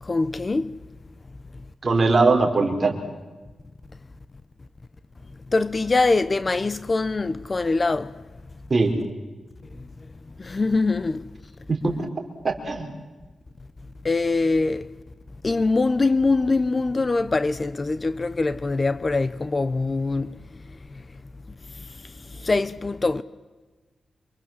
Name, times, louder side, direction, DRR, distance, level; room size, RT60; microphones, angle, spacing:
voice 1, 0.0-0.8 5.5-8.1 10.4-11.3 14.0-14.9 15.4-20.3 21.8-23.2, left 3 dB, 30° left, 0.8 m, -23 dB
voice 2, 1.8-3.0 8.7-9.0 11.7-11.9 12.4-12.9, right 3 dB, 35° right, 4.9 m, -20 dB
28.5 x 25.5 x 7.6 m
wide cardioid pair, 110°, 0 cm